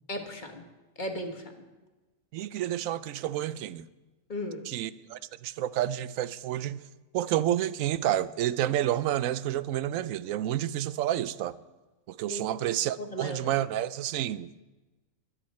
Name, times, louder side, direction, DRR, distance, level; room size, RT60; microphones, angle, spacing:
voice 1, 0.1-0.6 1.0-1.6 4.3-4.6 12.3-13.6, left 1 dB, 35° left, 1.5 m, -37 dB
voice 2, 2.3-3.8 4.7-6.8 7.1-11.6 12.1-14.5, right 12 dB, 75° right, 0.9 m, -29 dB
22.0 x 8.6 x 4.2 m
omnidirectional pair, 1.5 m